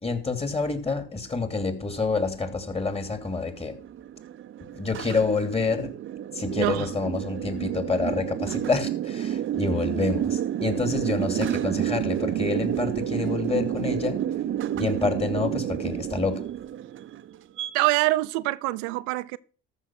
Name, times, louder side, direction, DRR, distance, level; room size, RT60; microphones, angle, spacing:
voice 1, 0.0-3.8 4.7-5.9 6.3-14.2 14.7-16.4, left 4 dB, 20° left, 2.8 m, -28 dB
sound 1, 1.4-17.7, right 11 dB, 40° right, 0.8 m, -30 dB
voice 2, 6.5-6.9 17.7-19.4, right 19 dB, 75° right, 0.7 m, -25 dB
13.5 x 6.6 x 6.0 m
supercardioid pair, 90°, 30 cm